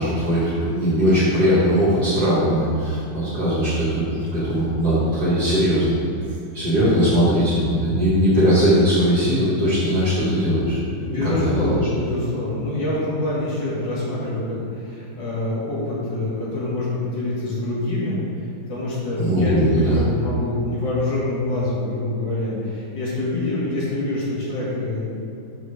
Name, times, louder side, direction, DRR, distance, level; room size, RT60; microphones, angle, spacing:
voice 1, 0.0-6.0 6.5-10.8 11.2-11.7 19.2-20.0, equal, 60° right, -10 dB, 2.3 m, -19 dB
voice 2, 11.0-18.2 18.7-25.1, left 2 dB, 85° left, -7 dB, 2.6 m, -25 dB
5.5 x 5.4 x 6.4 m, 2.6 s
omnidirectional pair, 1.9 m